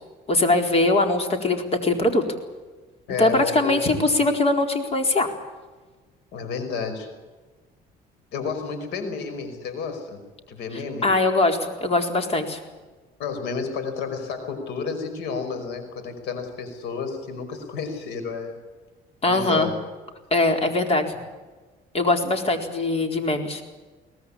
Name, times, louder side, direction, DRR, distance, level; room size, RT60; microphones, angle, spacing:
voice 1, 0.3-2.2 3.2-5.3 11.0-12.6 19.2-19.7 20.3-21.2 21.9-23.6, left 2 dB, 35° left, 5 dB, 4.2 m, -21 dB
voice 2, 3.1-3.7 4.1-4.2 6.3-7.1 8.3-10.2 10.5-11.1 13.2-18.6 19.3-19.7, left 5 dB, 85° left, 8 dB, 5.2 m, -31 dB
23.0 x 18.5 x 8.7 m, 1.3 s
cardioid pair, 110°, 17 cm